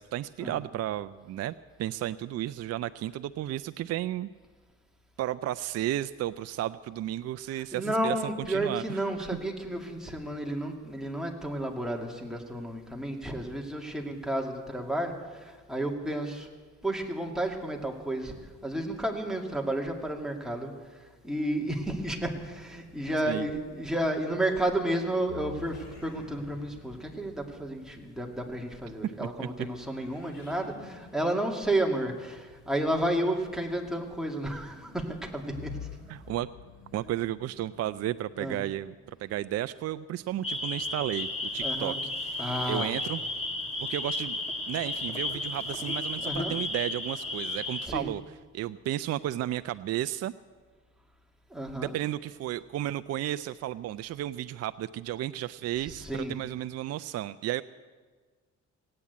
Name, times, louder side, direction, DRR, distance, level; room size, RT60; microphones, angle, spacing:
voice 1, 0.0-1.5 1.8-4.3 5.2-8.2 8.5-9.0 23.3-23.5 29.2-29.5 36.1-36.5 36.9-42.4 42.7-43.2 43.8-44.4 44.7-48.2 48.5-50.3 51.7-57.6, right 13 dB, 55° right, 13 dB, 0.4 m, -33 dB
voice 2, 7.5-16.5 16.8-35.7 38.3-38.6 41.6-42.0 42.4-42.9 46.2-46.6 47.8-48.1 51.5-52.0 55.8-56.4, right 1 dB, ahead, 1 dB, 2.3 m, -32 dB
sound 1, 22.4-39.9, left 7 dB, 60° left, 4.9 m, -51 dB
sound 2, 40.4-47.9, left 2 dB, 20° left, 1.8 m, -33 dB
18.0 x 8.7 x 8.2 m, 1.5 s
cardioid pair, 90°, 30 cm